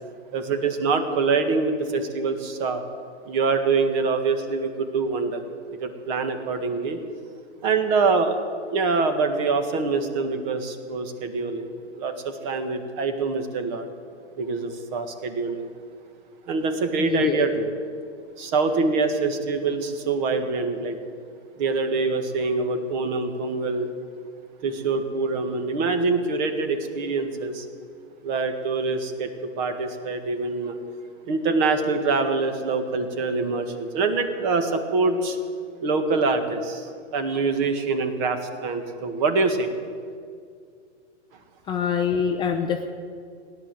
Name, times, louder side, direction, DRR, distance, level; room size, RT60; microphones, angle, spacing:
voice 1, 0.3-2.8 3.3-5.4 5.8-7.0 7.6-8.4 8.7-13.9 14.4-15.7 16.5-17.7 18.4-21.0 21.6-23.9 24.6-27.7 28.2-30.8 31.3-35.4 35.8-39.7, right 4 dB, 40° right, 7 dB, 1.8 m, -25 dB
voice 2, 17.0-17.4 41.7-42.9, left 7 dB, 15° left, 4 dB, 0.5 m, -24 dB
16.5 x 11.0 x 7.7 m, 2.2 s
hypercardioid pair, 140°, 35 cm